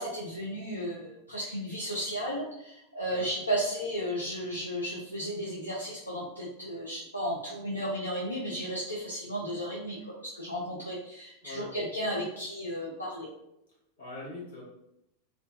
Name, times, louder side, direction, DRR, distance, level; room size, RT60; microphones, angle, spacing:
voice 1, 0.0-13.3, equal, 85° left, -5 dB, 0.4 m, -34 dB
voice 2, 11.4-11.8 14.0-14.6, left 2 dB, 65° left, -6 dB, 1.0 m, -42 dB
2.5 x 2.2 x 2.3 m, 0.82 s
figure-of-eight pair, 90°, 0 cm